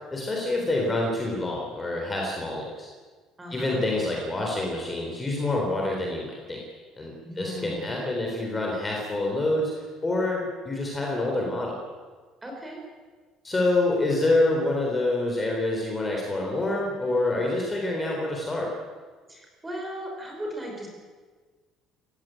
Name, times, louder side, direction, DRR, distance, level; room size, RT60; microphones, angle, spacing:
voice 1, 0.1-2.9 3.5-6.6 7.0-9.7 10.0-11.8 13.4-18.7, left 2 dB, 15° left, -1 dB, 3.9 m, -27 dB
voice 2, 3.4-3.8 7.2-8.0 12.4-12.8 19.3-20.9, equal, 10° right, 1 dB, 5.8 m, -37 dB
29.0 x 16.0 x 9.2 m, 1.4 s
cardioid pair, 170°, 0 cm